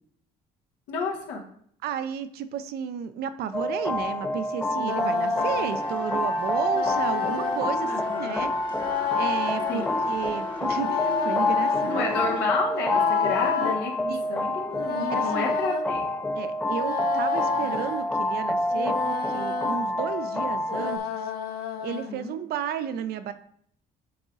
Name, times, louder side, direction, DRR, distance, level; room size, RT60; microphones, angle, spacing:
voice 1, 0.9-1.4 7.8-8.5 9.7-10.1 11.9-16.1 17.6-17.9 21.9-22.3, left 3 dB, 85° left, 0 dB, 1.4 m, -31 dB
voice 2, 1.8-7.9 8.2-8.5 9.2-12.1 14.1-14.3 15.0-15.6 16.3-21.3 21.8-23.3, right 9 dB, 70° right, 11 dB, 0.5 m, -33 dB
sound 1, 3.5-21.0, left 1 dB, 10° left, 0.5 m, -27 dB
sound 2, 4.7-5.8 6.7-7.7 8.7-9.9 10.7-11.9 12.7-13.8 14.7-15.8 16.7-18.1 18.7-19.8 20.7-22.1, left 8 dB, 70° left, 0.6 m, -31 dB
sound 3, 5.4-12.5, left 3 dB, 30° left, 1.3 m, -39 dB
10.0 x 3.8 x 2.5 m, 0.64 s
cardioid pair, 110°, 17 cm